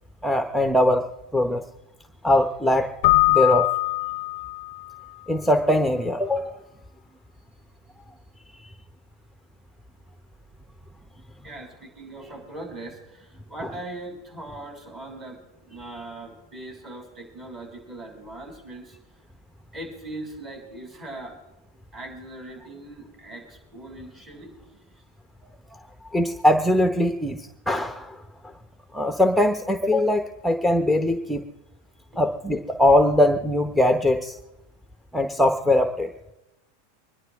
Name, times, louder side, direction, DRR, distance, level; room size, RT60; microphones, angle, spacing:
voice 1, 0.2-1.6 2.2-2.9 3.3-3.7 5.3-6.6 8.5-8.7 26.1-28.2 28.9-31.4 32.2-34.4 35.1-36.1, left 1 dB, ahead, 7 dB, 0.9 m, -21 dB
Keyboard (musical), 3.0-4.8, left 21 dB, 60° left, 0.5 m, -21 dB
voice 2, 11.3-19.0 19.7-21.4 21.9-25.0 32.1-32.2, right 2 dB, 30° right, 0 dB, 6.8 m, -40 dB
25.0 x 11.0 x 3.5 m, 0.94 s
hypercardioid pair, 100°, 0 cm